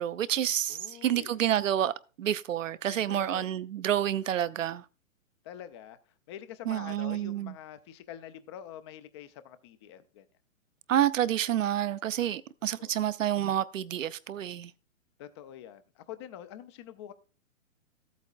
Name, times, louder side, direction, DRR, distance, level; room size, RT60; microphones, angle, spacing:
voice 1, 0.0-1.9 2.2-4.8 6.7-7.5 10.9-14.7, right 11 dB, 70° right, 0.7 m, -29 dB
voice 2, 0.7-1.4 2.9-3.5 5.4-6.0 6.3-10.3 12.6-12.9 15.2-17.1, left 10 dB, 20° left, 0.5 m, -46 dB
14.0 x 8.2 x 2.4 m
hypercardioid pair, 130°, 40 cm